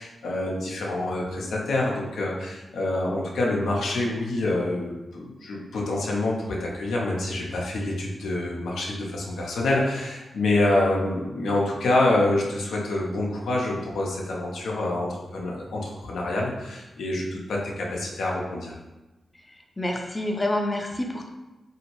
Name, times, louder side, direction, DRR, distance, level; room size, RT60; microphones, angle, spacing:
voice 1, 0.0-18.8, left 2 dB, 85° left, -2 dB, 0.5 m, -26 dB
voice 2, 19.8-21.3, left 1 dB, 20° left, 2 dB, 0.4 m, -27 dB
2.9 x 2.7 x 2.9 m, 1.1 s
cardioid pair, 60°, 0 cm